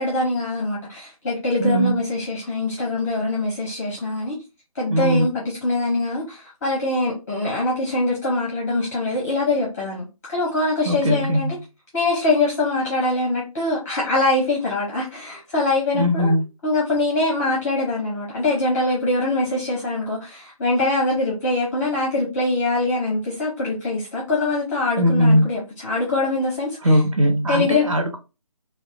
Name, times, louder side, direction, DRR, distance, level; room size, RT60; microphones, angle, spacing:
voice 1, 0.0-4.4 4.7-11.6 11.9-16.3 16.6-27.0 27.5-27.9, left 2 dB, 25° left, 0.7 m, -23 dB
voice 2, 1.6-2.0 4.9-5.3 10.8-11.5 15.9-16.5 25.0-25.5 26.8-28.2, equal, 60° right, 0.6 m, -19 dB
2.6 x 2.1 x 2.3 m
figure-of-eight pair, 160°, 19 cm